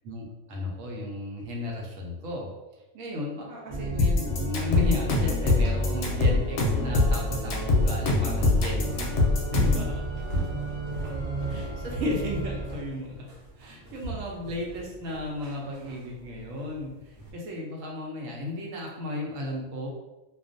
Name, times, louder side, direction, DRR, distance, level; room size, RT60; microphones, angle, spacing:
voice 1, 0.0-2.5 2.9-10.0 11.5-13.3 13.6-19.9, left 1 dB, 80° right, -1 dB, 1.0 m, -34 dB
Organ, 3.7-12.9, equal, 35° right, 0.5 m, -32 dB
sound 1, 4.0-9.9, left 3 dB, 65° left, 0.7 m, -23 dB
sound 2, 6.1-17.3, right 1 dB, 60° right, 0.8 m, -40 dB
2.4 x 2.2 x 2.5 m, 1.0 s
omnidirectional pair, 1.3 m